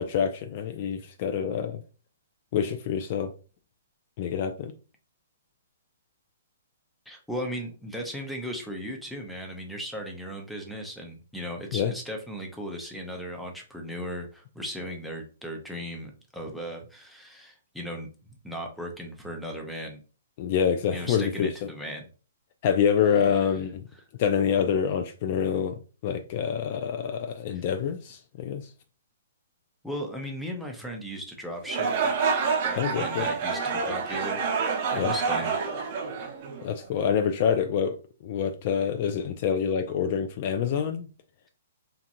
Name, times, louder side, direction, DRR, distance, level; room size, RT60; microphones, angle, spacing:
voice 1, 0.0-1.8 2.5-3.3 4.2-4.7 11.7-11.9 20.4-21.5 22.6-23.8 24.2-28.7 32.8-33.3 34.9-35.1 36.6-38.0 38.2-41.1, left 7 dB, 45° left, 0.3 m, -26 dB
voice 2, 7.1-20.0 20.9-22.0 27.5-27.6 29.8-31.9 32.6-35.5, equal, ahead, 0.6 m, -37 dB
sound 1, 31.6-36.9, right 5 dB, 45° right, 0.6 m, -28 dB
2.9 x 2.5 x 2.6 m
hypercardioid pair, 145°, 0 cm